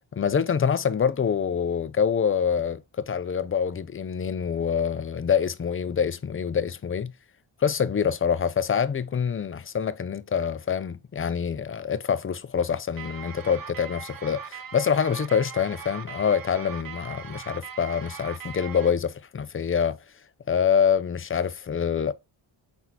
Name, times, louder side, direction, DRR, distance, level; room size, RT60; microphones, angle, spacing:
voice 1, 0.1-7.1 7.6-20.0 20.5-22.1, left 7 dB, 30° left, 0.4 m, -25 dB
sound 1, 13.0-18.9, right 7 dB, 45° right, 0.6 m, -40 dB
4.5 x 4.0 x 2.8 m
cardioid pair, 80°, 49 cm